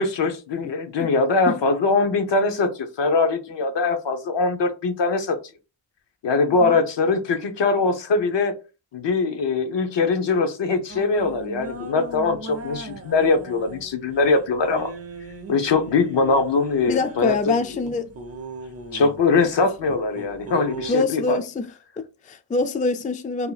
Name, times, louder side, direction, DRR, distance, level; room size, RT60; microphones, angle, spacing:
voice 1, 0.0-5.4 6.2-8.5 8.9-14.9 15.5-17.8 18.9-21.4, left 3 dB, 70° left, 0.7 m, -22 dB
sound 1, 10.9-20.9, right 3 dB, 35° right, 0.5 m, -39 dB
voice 2, 16.9-18.1 19.0-19.1 20.9-23.5, left 3 dB, 20° left, 0.3 m, -25 dB
2.8 x 2.2 x 4.0 m
wide cardioid pair, 80°, 45 cm